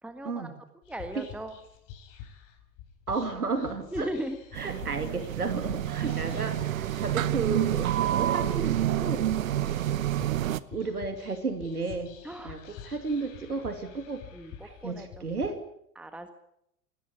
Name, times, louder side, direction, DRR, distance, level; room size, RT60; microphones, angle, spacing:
voice 1, 0.0-0.5 0.9-1.5 3.9-4.4 12.2-12.6 14.3-15.2 15.9-16.3, right 1 dB, 5° right, 7 dB, 1.6 m, -37 dB
Whispering, 0.8-15.5, left 9 dB, 45° left, 4.5 m, -48 dB
voice 2, 3.1-4.1 4.5-9.2 10.7-12.1 12.4-14.2 14.6-15.6, right 4 dB, 80° right, 7 dB, 2.5 m, -33 dB
sound 1, 4.5-10.6, right 12 dB, 65° right, 1.0 m, -28 dB
20.5 x 18.0 x 8.4 m, 0.78 s
figure-of-eight pair, 85°, 44 cm